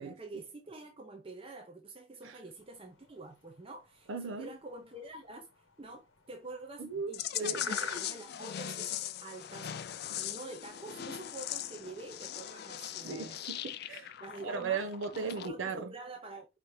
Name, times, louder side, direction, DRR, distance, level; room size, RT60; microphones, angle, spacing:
voice 1, 0.0-5.5 5.8-9.8 10.1-13.4 14.2-14.8 15.1-16.5, right 2 dB, 25° right, 0.6 m, -47 dB
sound 1, 2.6-12.6, left 4 dB, 65° left, 1.2 m, -49 dB
voice 2, 4.1-4.5 6.8-7.6 10.1-10.3 13.0-14.1 14.4-15.9, right 5 dB, 70° right, 0.6 m, -37 dB
sound 2, 7.1-15.5, left 11 dB, 50° left, 0.3 m, -40 dB
5.1 x 2.8 x 3.1 m
head